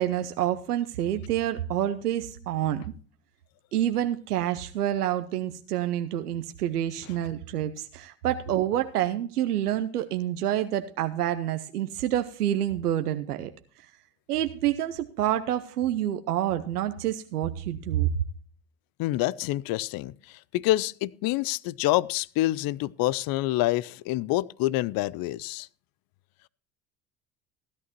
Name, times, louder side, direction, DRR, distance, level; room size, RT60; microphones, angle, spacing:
voice 1, 0.0-2.8 3.7-13.5 14.3-18.1, right 12 dB, 90° right, 0.8 m, -28 dB
voice 2, 19.0-25.7, left 16 dB, 50° left, 0.6 m, -27 dB
15.5 x 11.5 x 3.0 m
hypercardioid pair, 70°, 45 cm